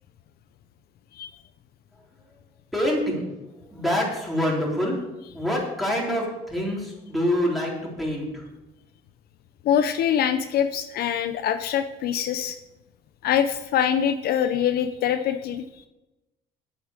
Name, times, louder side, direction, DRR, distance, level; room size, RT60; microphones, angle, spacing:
voice 1, 2.7-3.3 3.7-5.0 5.3-7.7 8.0-8.3, equal, ahead, -4 dB, 3.9 m, -25 dB
voice 2, 9.6-12.6 13.2-15.9, left 9 dB, 65° left, 9 dB, 0.7 m, -24 dB
8.9 x 8.5 x 6.6 m, 0.98 s
cardioid pair, 110°, 17 cm